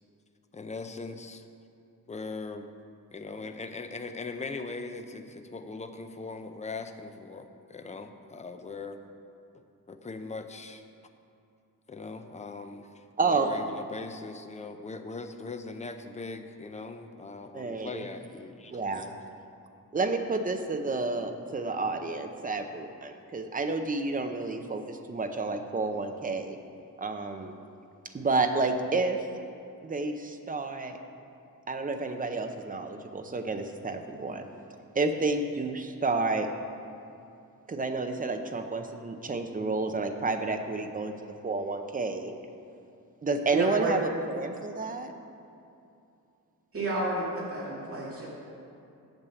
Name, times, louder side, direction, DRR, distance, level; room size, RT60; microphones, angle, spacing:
voice 1, 0.5-1.4 2.1-2.7 3.1-9.0 9.9-10.8 11.9-19.1, left 3 dB, 20° left, 7 dB, 0.5 m, -40 dB
voice 2, 13.2-13.5 17.5-18.1 18.7-19.1 19.9-26.6 27.0-27.5 28.1-29.3 29.8-31.0 31.7-34.5 34.9-36.5 37.7-42.3 43.2-45.1, right 3 dB, 25° right, 6 dB, 0.6 m, -30 dB
voice 3, 43.5-43.9 46.7-48.3, right 2 dB, 40° right, -5 dB, 2.1 m, -31 dB
8.9 x 7.9 x 6.9 m, 2.6 s
wide cardioid pair, 175°, 35 cm